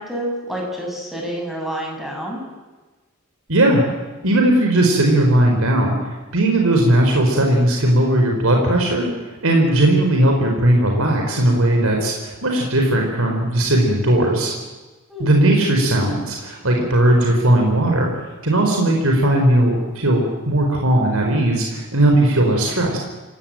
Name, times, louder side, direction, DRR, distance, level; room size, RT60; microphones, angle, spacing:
voice 1, 0.0-2.4 15.1-15.3, equal, ahead, 0 dB, 6.8 m, -28 dB
voice 2, 3.5-3.8 4.2-6.0 6.3-9.1 9.4-14.5 15.2-18.1 18.4-23.0, right 1 dB, 70° right, 1 dB, 4.7 m, -17 dB
28.0 x 17.0 x 9.1 m, 1.3 s
head